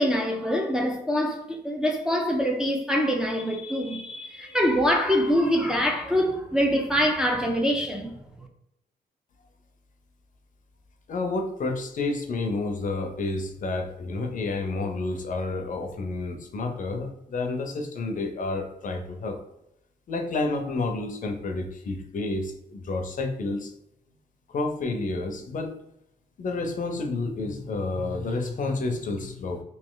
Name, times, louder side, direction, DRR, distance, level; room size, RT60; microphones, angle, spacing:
voice 1, 0.0-8.1, equal, 5° right, 0.4 m, -24 dB
voice 2, 11.1-19.4 20.1-23.7 24.5-25.7 26.4-29.6, left 3 dB, 50° left, 0.6 m, -30 dB
3.1 x 2.8 x 3.8 m
wide cardioid pair, 150°, 17 cm